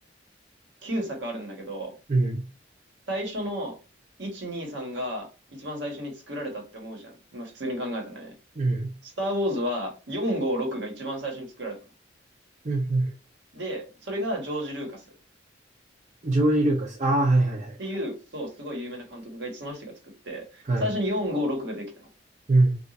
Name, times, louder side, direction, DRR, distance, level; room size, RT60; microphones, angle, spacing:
voice 1, 0.8-1.9 3.1-3.8 4.2-8.3 9.0-11.8 13.5-15.0 17.8-19.9 20.2-22.1, equal, 70° right, 1.2 m, -32 dB
voice 2, 2.1-2.4 8.6-8.9 12.6-13.1 16.2-17.8 20.6-20.9 22.5-22.8, right 2 dB, 40° right, 0.6 m, -22 dB
2.4 x 2.4 x 4.0 m
head